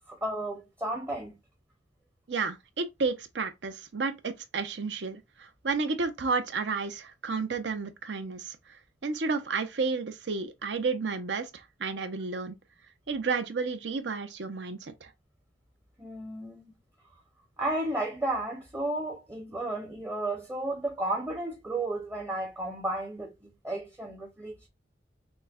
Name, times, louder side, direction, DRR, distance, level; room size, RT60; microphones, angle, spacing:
voice 1, 0.0-1.3 16.0-16.6 17.6-23.3 23.6-24.7, right 1 dB, 15° right, 0.7 m, -33 dB
voice 2, 2.3-12.6 13.1-15.1, right 4 dB, 70° right, 0.6 m, -32 dB
6.1 x 2.1 x 2.3 m
head